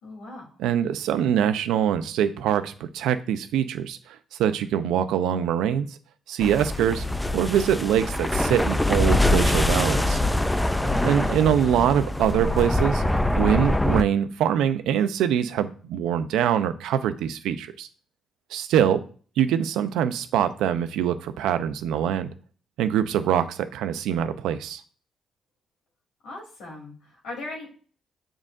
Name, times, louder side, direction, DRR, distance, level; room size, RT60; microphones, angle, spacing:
voice 1, 0.0-0.5 10.7-11.0 26.2-27.7, left 2 dB, 90° left, -2 dB, 2.9 m, -38 dB
voice 2, 0.6-5.9 6.3-7.0 7.3-10.2 11.0-13.0 13.4-17.9 18.5-19.0 19.4-22.3 22.8-24.8, right 9 dB, 90° right, 10 dB, 0.6 m, -24 dB
sound 1, 6.4-14.0, left 1 dB, 10° left, 0.4 m, -24 dB
7.5 x 4.9 x 2.5 m, 0.41 s
cardioid pair, 90°, 0 cm